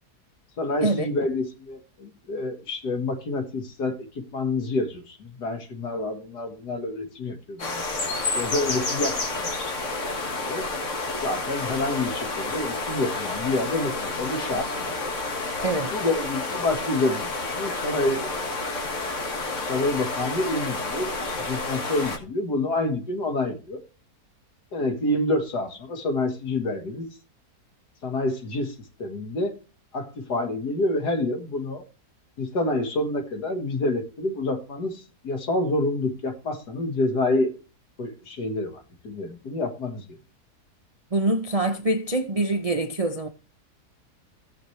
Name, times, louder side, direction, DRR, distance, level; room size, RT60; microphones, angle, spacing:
voice 1, 0.6-4.1 4.3-9.8 10.2-10.7 11.2-14.7 15.9-18.5 19.4-23.8 24.7-27.1 28.0-28.7 29.0-29.5 29.9-31.8 32.4-37.5 38.0-40.0, left 2 dB, 85° left, 2.3 m, -28 dB
sound 1, 7.6-22.2, left 3 dB, 50° left, 2.0 m, -30 dB
voice 2, 15.6-15.9 41.1-43.3, right 2 dB, 50° right, 0.4 m, -25 dB
17.0 x 6.4 x 3.3 m
omnidirectional pair, 1.7 m